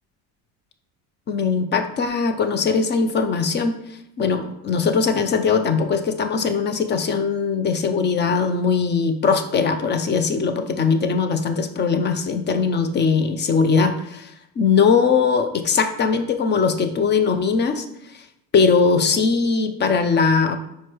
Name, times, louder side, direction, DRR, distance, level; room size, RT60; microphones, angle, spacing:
voice 1, 1.3-3.8 4.2-14.3 14.6-17.8 18.5-20.6, left 5 dB, 25° left, 8 dB, 0.5 m, -20 dB
4.6 x 4.5 x 4.6 m, 0.81 s
cardioid pair, 140°, 41 cm